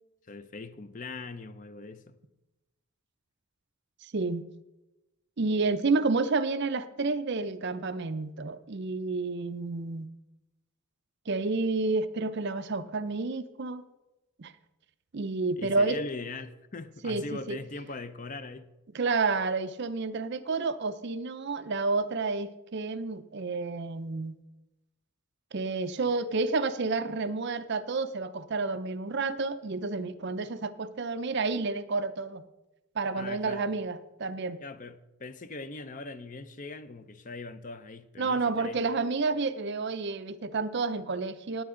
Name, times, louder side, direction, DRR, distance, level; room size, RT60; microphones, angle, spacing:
voice 1, 0.3-2.1 15.6-18.7 33.1-33.6 34.6-38.9, left 3 dB, 35° left, 12 dB, 0.6 m, -41 dB
voice 2, 4.0-4.4 5.4-10.1 11.3-13.8 14.4-14.5 15.1-16.0 17.0-17.6 18.9-24.4 25.5-32.4 32.9-34.6 38.2-41.6, right 3 dB, 50° right, 12 dB, 0.5 m, -30 dB
18.0 x 8.6 x 3.8 m, 0.99 s
head